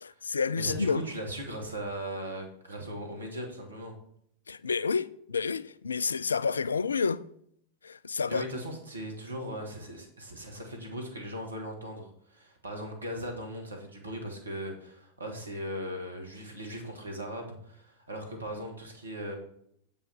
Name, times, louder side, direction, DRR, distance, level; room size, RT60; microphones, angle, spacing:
voice 1, 0.0-1.0 4.5-7.2 7.8-8.4, left 5 dB, 75° left, 0.3 m, -29 dB
voice 2, 0.6-4.0 8.3-19.3, equal, 75° right, 1.7 m, -38 dB
7.5 x 5.5 x 4.4 m
figure-of-eight pair, 90°, 0 cm